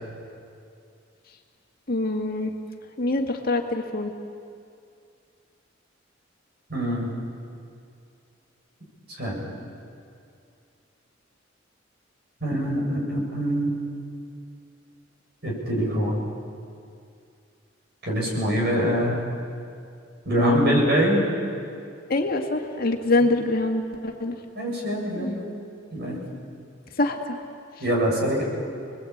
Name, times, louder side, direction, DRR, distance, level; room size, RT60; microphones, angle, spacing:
voice 1, 1.9-2.5 3.0-4.1 20.4-20.8 22.1-24.4 25.2-25.4 27.0-27.4, left 2 dB, 50° left, 2 dB, 2.1 m, -24 dB
voice 2, 6.7-7.1 9.2-9.5 12.4-13.8 15.4-16.2 18.0-19.2 20.2-21.2 24.5-25.5 25.9-26.2 27.8-28.4, equal, 60° right, -2 dB, 7.9 m, -24 dB
28.5 x 21.0 x 8.7 m, 2.4 s
head